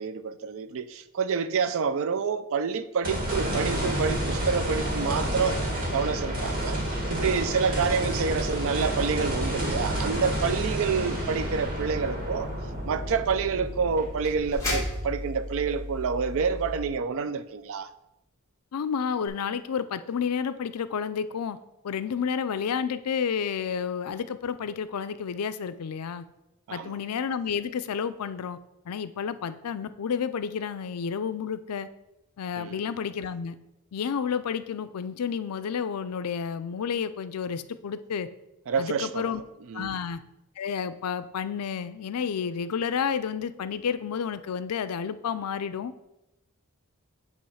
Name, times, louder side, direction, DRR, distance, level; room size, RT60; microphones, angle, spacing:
voice 1, 0.0-5.6 5.9-6.8 7.1-12.5 12.9-17.9 26.7-27.0 32.6-32.8 38.7-40.0, right 5 dB, 60° right, 0.4 m, -28 dB
sound 1, 3.0-15.4 15.8-15.9 19.3-19.4, right 1 dB, 40° right, 1.9 m, -30 dB
sound 2, 3.3-16.8, equal, 15° left, 2.0 m, -37 dB
voice 2, 18.7-21.6 21.8-26.2 26.7-28.6 28.9-31.9 32.4-33.6 33.9-38.3 38.8-39.4 39.7-40.2 40.6-45.9, left 7 dB, 85° left, 0.4 m, -30 dB
8.5 x 3.0 x 5.6 m
head